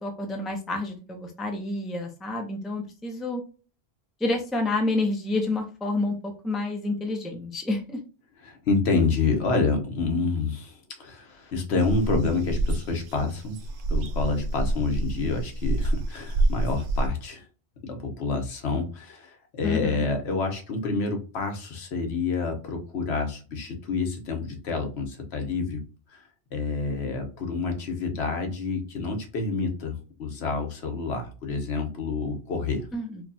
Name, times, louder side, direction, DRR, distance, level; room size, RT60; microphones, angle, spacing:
voice 1, 0.0-3.4 4.2-8.0 19.6-20.0 32.9-33.2, left 2 dB, ahead, 2 dB, 0.4 m, -29 dB
voice 2, 8.4-17.4 17.8-25.9 26.1-26.2 26.5-32.9, left 4 dB, 75° left, 4 dB, 1.1 m, -28 dB
sound 1, 11.8-17.1, right 2 dB, 60° right, 0.7 m, -27 dB
4.6 x 2.3 x 2.6 m, 0.35 s
omnidirectional pair, 1.1 m